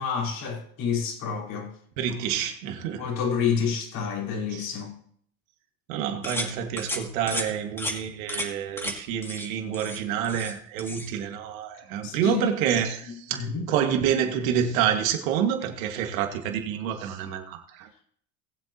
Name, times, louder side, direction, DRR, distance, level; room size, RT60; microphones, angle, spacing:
voice 1, 0.0-1.7 3.0-4.9 12.0-12.4 13.1-13.7, left 6 dB, 50° left, 4.6 m, -29 dB
voice 2, 2.0-3.1 4.5-4.7 5.9-17.9, right 9 dB, 75° right, 2.1 m, -28 dB
sound 1, 6.2-6.5 6.8-7.0 7.3-7.5 7.8-7.9 8.3-8.5 8.8-8.9 9.2-9.5 9.7-10.5 10.8-11.1, equal, 5° left, 2.6 m, -32 dB
19.5 x 7.8 x 3.0 m
supercardioid pair, 100°, 41 cm